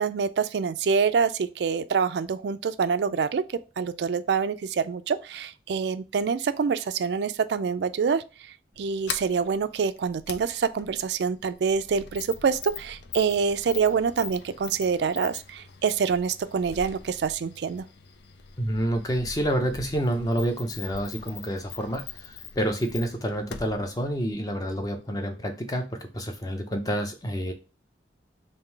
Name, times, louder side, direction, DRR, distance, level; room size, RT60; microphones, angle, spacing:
voice 1, 0.0-3.4 3.8-8.2 8.8-17.8, right 6 dB, 70° right, 0.3 m, -26 dB
Sliding door, 8.7-25.1, left 6 dB, 75° left, 0.5 m, -43 dB
voice 2, 18.6-27.5, equal, 20° left, 0.6 m, -28 dB
3.7 x 2.6 x 4.5 m
head